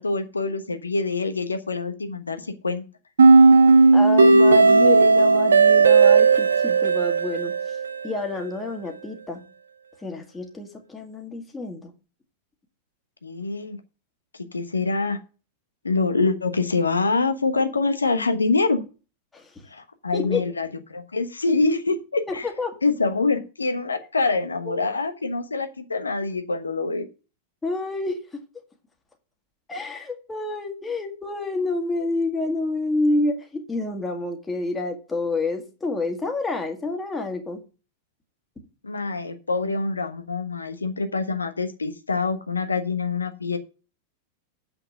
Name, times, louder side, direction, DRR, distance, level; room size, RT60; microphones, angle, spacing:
voice 1, 0.0-2.8 13.2-13.8 14.4-15.2 15.8-18.8 19.7-22.5 22.8-27.1 38.8-43.6, left 3 dB, 75° left, 1.1 m, -25 dB
sound 1, 3.2-8.2, right 4 dB, 70° right, 0.9 m, -15 dB
voice 2, 3.9-7.8 8.0-9.4 10.0-11.9 19.3-19.6 20.1-20.5 22.3-22.8 24.7-24.9 27.6-28.4 29.7-37.6, left 2 dB, 15° left, 1.9 m, -28 dB
7.9 x 5.9 x 7.8 m
figure-of-eight pair, 90°, 0 cm